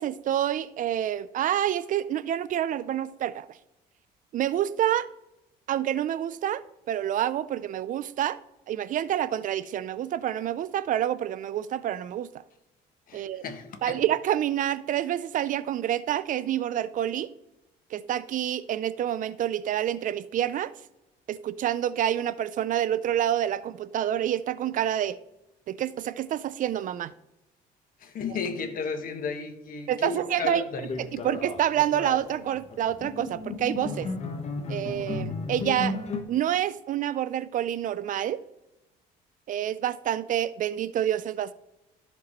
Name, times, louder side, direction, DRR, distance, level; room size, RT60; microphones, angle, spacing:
voice 1, 0.0-3.6 4.3-5.1 5.7-6.6 6.9-8.4 8.7-12.4 13.1-13.4 13.8-17.3 17.9-20.7 21.3-25.2 25.7-27.1 29.9-30.6 31.0-34.1 34.7-36.0 36.3-38.4 39.5-41.5, right 11 dB, 50° right, 0.4 m, -28 dB
voice 2, 13.1-14.0 28.0-30.9, left 5 dB, 55° left, 1.4 m, -34 dB
sound 1, 30.8-36.2, left 3 dB, 40° left, 1.1 m, -34 dB
14.0 x 5.2 x 3.0 m
cardioid pair, 110°, 17 cm